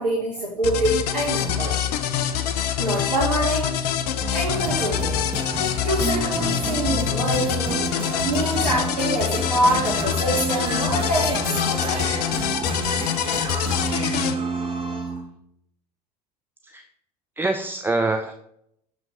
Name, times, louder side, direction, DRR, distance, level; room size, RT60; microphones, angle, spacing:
voice 1, 0.0-1.8 2.8-3.7 4.2-5.3 5.8-12.1, right 1 dB, 80° right, -5 dB, 1.5 m, -25 dB
sound 1, 0.6-14.3, left 10 dB, 70° left, 0.6 m, -25 dB
sound 2, 4.2-15.3, right 3 dB, 25° right, 1.7 m, -30 dB
voice 2, 17.4-18.3, right 2 dB, 10° right, 7 dB, 0.5 m, -24 dB
7.2 x 5.3 x 4.1 m, 0.73 s
figure-of-eight pair, 70°, 21 cm